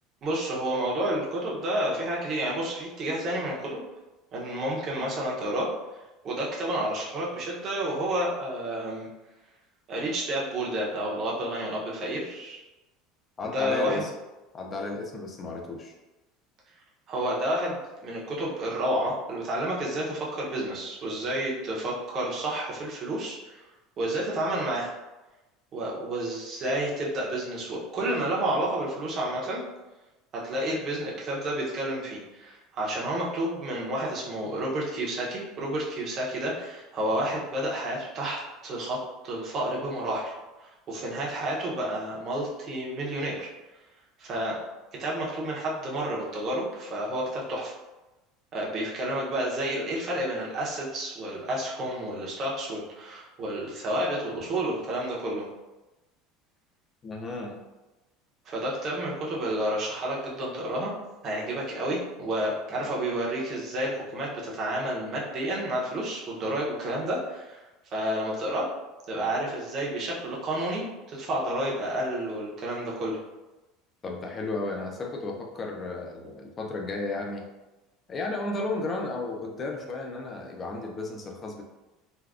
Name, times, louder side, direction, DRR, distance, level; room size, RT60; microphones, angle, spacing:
voice 1, 0.2-3.8 4.3-5.7 6.2-9.1 9.9-12.6 13.5-14.0 17.1-23.6 24.0-24.9 25.7-29.6 30.3-39.0 39.2-40.3 40.6-43.5 44.2-44.6 45.0-47.7 48.5-55.5 58.5-60.9 61.2-67.6 67.9-68.7 69.1-73.2, right 1 dB, 30° right, -4 dB, 0.6 m, -30 dB
voice 2, 13.4-14.1 14.5-15.9 57.0-57.6 74.0-77.5 78.1-81.6, left 2 dB, 20° left, 1 dB, 0.4 m, -33 dB
3.3 x 2.2 x 2.4 m, 1.1 s
cardioid pair, 175°, 0 cm